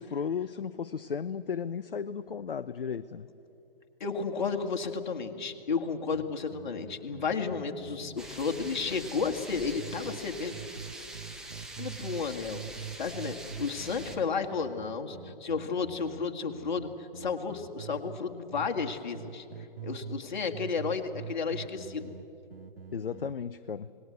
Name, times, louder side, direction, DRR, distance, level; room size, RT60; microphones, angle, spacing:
voice 1, 0.0-3.3 22.9-23.9, left 6 dB, 65° left, 13 dB, 0.7 m, -35 dB
voice 2, 4.0-10.5 11.8-19.5 19.8-22.1, left 5 dB, 50° left, 4 dB, 2.0 m, -32 dB
sound 1, 6.1-10.2 10.5-12.3 12.5-18.2 18.5-20.3 20.5-23.4, right 7 dB, 70° right, 1.1 m, -44 dB
sound 2, 8.2-14.2, right 2 dB, ahead, 0.9 m, -44 dB
27.0 x 19.5 x 8.1 m, 3.0 s
figure-of-eight pair, 130°, 30 cm